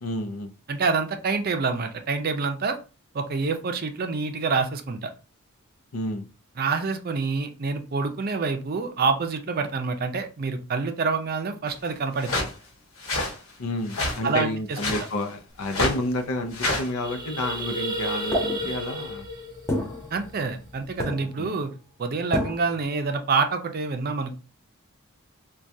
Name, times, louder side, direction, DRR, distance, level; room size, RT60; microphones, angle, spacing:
voice 1, 0.0-0.5 5.9-6.3 13.6-19.3 21.4-21.6, left 1 dB, 90° left, 6 dB, 0.6 m, -30 dB
voice 2, 0.7-2.8 3.1-5.1 6.6-12.3 14.2-14.8 20.1-21.7 22.0-24.3, right 4 dB, 45° right, 6 dB, 0.5 m, -27 dB
sound 1, 12.2-12.5 13.0-13.3 13.9-14.2 14.7-15.1 15.6-16.0 16.5-16.9, left 2 dB, 70° left, 1.4 m, -27 dB
sound 2, 15.6-15.7 15.9-16.2 16.5-20.9, right 1 dB, 20° right, 0.8 m, -33 dB
sound 3, 18.3-19.1 19.7-20.7 21.0-21.6 22.3-22.8, left 1 dB, 15° left, 0.5 m, -30 dB
4.5 x 2.3 x 2.6 m, 0.34 s
head